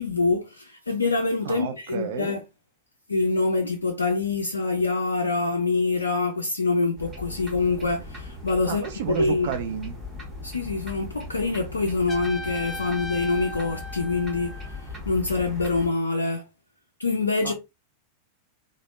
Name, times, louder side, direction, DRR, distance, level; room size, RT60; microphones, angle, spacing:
voice 1, 0.0-2.4 3.1-9.5 10.4-16.4 17.0-17.5, left 3 dB, 75° left, 0.4 m, -25 dB
voice 2, 1.4-2.3 8.7-10.0 17.4-17.5, right 7 dB, 55° right, 0.4 m, -31 dB
sound 1, 7.0-15.9, left 2 dB, 15° right, 1.3 m, -39 dB
Trumpet, 12.1-14.9, left 2 dB, 15° left, 0.5 m, -38 dB
3.3 x 2.0 x 2.4 m
figure-of-eight pair, 90°, 0 cm